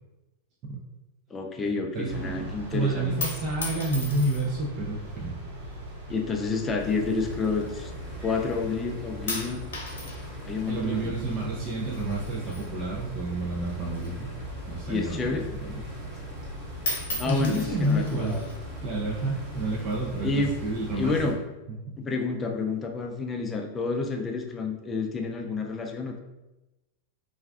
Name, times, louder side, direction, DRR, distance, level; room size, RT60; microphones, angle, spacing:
voice 1, 1.3-3.2 6.1-7.9 8.2-9.7 10.4-11.1 14.9-15.4 17.2-18.4 20.2-20.5 20.9-21.3 22.0-26.2, left 4 dB, 20° left, 3 dB, 0.4 m, -29 dB
voice 2, 1.9-5.3 10.7-14.3 14.7-15.8 17.2-18.5 18.8-21.3 21.7-22.0, right 2 dB, 35° right, -4 dB, 0.5 m, -30 dB
sound 1, 2.1-21.2, right 1 dB, 70° right, 1.2 m, -41 dB
sound 2, 3.0-4.7 5.5-6.0 6.8-8.2 8.5-8.9 9.3-13.3 13.6-15.3 15.7-15.8 16.1-16.5 16.8-18.6 19.4-20.0, left 2 dB, 90° left, 0.7 m, -37 dB
sound 3, 6.8-21.3, equal, 15° right, 1.0 m, -43 dB
2.4 x 2.3 x 3.4 m, 1.0 s
hypercardioid pair, 125°, 0 cm